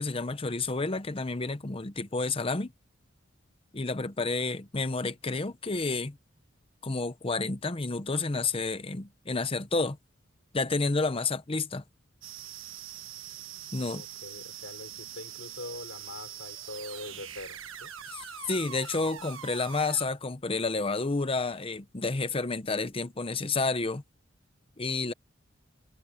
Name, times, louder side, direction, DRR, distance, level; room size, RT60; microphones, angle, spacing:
voice 1, 0.0-2.7 3.7-6.2 6.8-10.0 10.5-11.8 13.7-14.0 18.1-24.0 24.8-25.1, left 3 dB, 30° left, 0.8 m, -30 dB
sound 1, 12.2-20.1, right 9 dB, 90° right, 1.4 m, -43 dB
voice 2, 13.8-17.9, left 2 dB, 75° left, 4.5 m, -43 dB
head